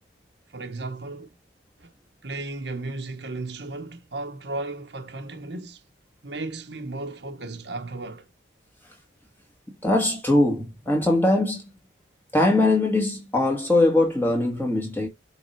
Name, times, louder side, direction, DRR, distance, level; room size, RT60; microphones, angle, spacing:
voice 1, 0.5-1.3 1.8-1.9 2.2-5.8 6.2-8.3, right 2 dB, 65° right, 1.3 m, -35 dB
voice 2, 9.8-11.6 12.3-15.1, left 2 dB, 10° left, 2.0 m, -21 dB
7.9 x 4.0 x 4.5 m
head